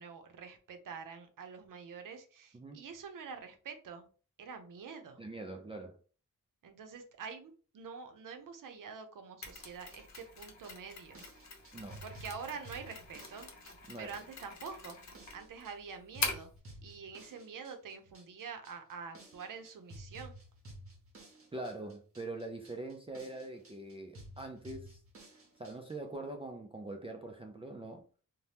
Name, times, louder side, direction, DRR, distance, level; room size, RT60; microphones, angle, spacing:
voice 1, 0.0-4.1 4.4-5.2 6.6-11.2 12.0-13.5 14.0-15.0 15.3-16.5 16.8-20.3, right 5 dB, 70° right, 0.7 m, -46 dB
voice 2, 5.2-6.0 11.7-12.0 13.9-14.1 21.5-25.0 25.6-28.0, right 2 dB, 20° right, 0.3 m, -43 dB
Mechanisms, 9.4-16.6, left 4 dB, 55° left, 0.7 m, -43 dB
sound 1, 9.5-26.0, right 1 dB, 45° right, 0.9 m, -54 dB
2.7 x 2.1 x 3.3 m
wide cardioid pair, 135°, 33 cm